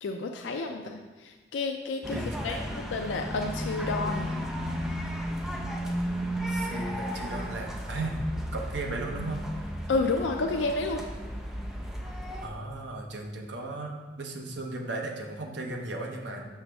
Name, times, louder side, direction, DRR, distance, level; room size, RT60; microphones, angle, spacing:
voice 1, 0.0-4.3 9.9-11.0, left 3 dB, 80° left, 4 dB, 0.4 m, -30 dB
sound 1, 2.0-12.5, equal, ahead, 0.4 m, -34 dB
voice 2, 2.1-2.6 6.5-8.3 8.5-9.4 12.4-16.5, right 2 dB, 75° right, 2 dB, 0.8 m, -36 dB
5.9 x 5.6 x 3.3 m, 1.3 s
head